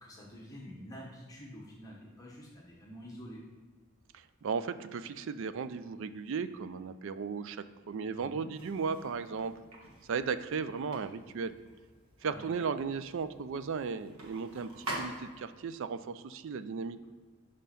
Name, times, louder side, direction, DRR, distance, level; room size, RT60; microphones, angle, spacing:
voice 1, 0.0-3.4 8.1-8.5 12.2-12.5, equal, 15° left, -3 dB, 1.0 m, -48 dB
voice 2, 4.1-9.5 10.1-11.5 12.2-17.1, right 5 dB, 60° right, 13 dB, 0.4 m, -36 dB
sound 1, 8.5-15.6, right 1 dB, 85° right, 1.6 m, -46 dB
5.5 x 5.1 x 5.7 m, 1.5 s
head